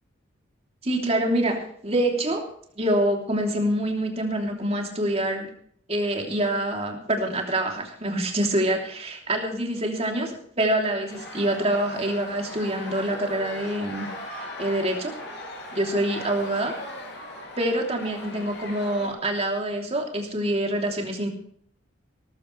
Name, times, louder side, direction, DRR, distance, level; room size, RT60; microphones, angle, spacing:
voice 1, 0.8-2.5 2.8-5.5 5.9-14.1 14.4-15.1 15.7-16.8 17.6-21.3, right 1 dB, 30° right, 1 dB, 3.1 m, -26 dB
sound 1, 11.1-19.1, left 1 dB, 60° left, 5.7 m, -38 dB
18.0 x 14.5 x 3.3 m, 0.63 s
head